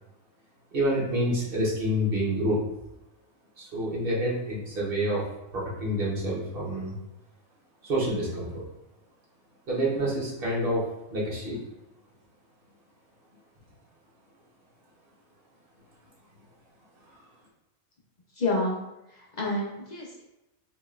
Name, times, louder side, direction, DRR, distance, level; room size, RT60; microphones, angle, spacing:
voice 1, 0.7-2.6 3.6-5.2 5.5-6.9 7.8-8.6 9.7-10.8 11.1-11.6, equal, 45° right, -5 dB, 1.3 m, -27 dB
voice 2, 18.3-18.8 19.1-20.2, left 2 dB, 45° left, -3 dB, 0.6 m, -29 dB
4.9 x 3.0 x 2.5 m, 0.93 s
omnidirectional pair, 1.5 m